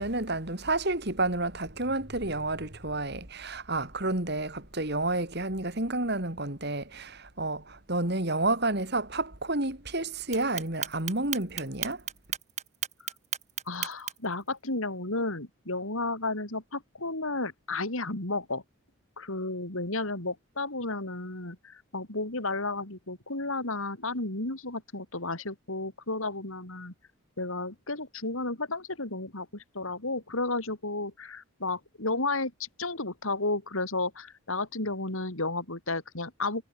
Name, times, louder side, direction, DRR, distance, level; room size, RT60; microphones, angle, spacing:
voice 1, 0.0-12.0, right 2 dB, 50° right, 3.2 m, -30 dB
Clock, 10.3-14.3, right 10 dB, 30° right, 6.6 m, -34 dB
voice 2, 13.7-18.6 19.2-26.9 27.4-36.6, left 2 dB, 70° left, 4.0 m, -33 dB
head